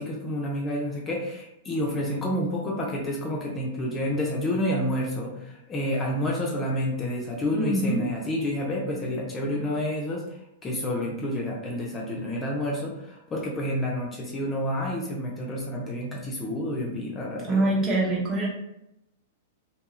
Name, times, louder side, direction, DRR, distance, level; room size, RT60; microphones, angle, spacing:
voice 1, 0.0-10.2 10.6-17.7, left 1 dB, 20° left, -2 dB, 0.5 m, -29 dB
voice 2, 7.5-8.0 17.5-18.5, right 2 dB, 25° right, -3 dB, 1.0 m, -24 dB
2.8 x 2.3 x 3.0 m, 0.84 s
hypercardioid pair, 130°, 0 cm